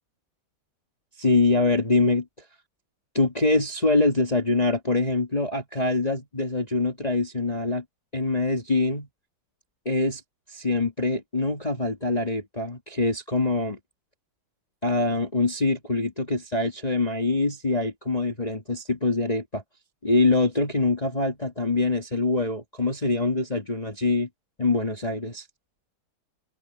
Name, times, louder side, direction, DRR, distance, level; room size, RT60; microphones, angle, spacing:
voice 1, 1.2-2.3 3.1-7.8 8.1-9.1 9.9-10.2 10.5-13.8 14.8-19.6 20.0-24.3 24.6-25.5, left 3 dB, 20° left, 1.9 m, -24 dB
open air
omnidirectional pair, 2.3 m